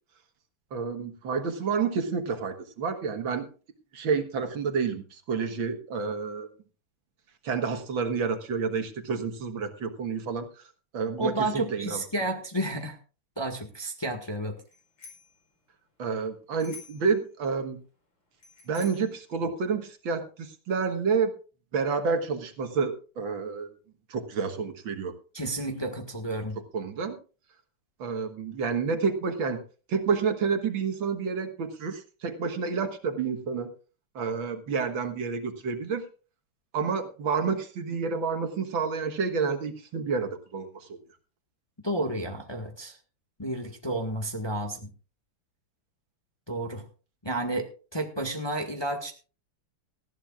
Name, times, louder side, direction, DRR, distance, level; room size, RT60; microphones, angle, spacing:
voice 1, 0.7-3.5 3.9-6.5 7.4-10.5 10.9-12.0 16.0-17.8 18.7-21.3 21.7-23.7 24.1-25.1 26.7-27.2 28.0-29.6 29.9-33.7 34.2-36.0 36.7-41.0, right 5 dB, 65° right, 6 dB, 2.1 m, -29 dB
voice 2, 11.2-13.0 13.4-14.6 25.3-26.6 41.8-43.0 43.4-44.9 46.5-46.8 47.2-47.7 47.9-49.1, right 1 dB, 15° left, 4 dB, 1.4 m, -31 dB
Bicycle bell, 14.7-15.4 16.6-17.1 18.4-19.2, left 3 dB, 75° left, 5.6 m, -48 dB
19.0 x 14.5 x 2.4 m, 0.35 s
omnidirectional pair, 2.4 m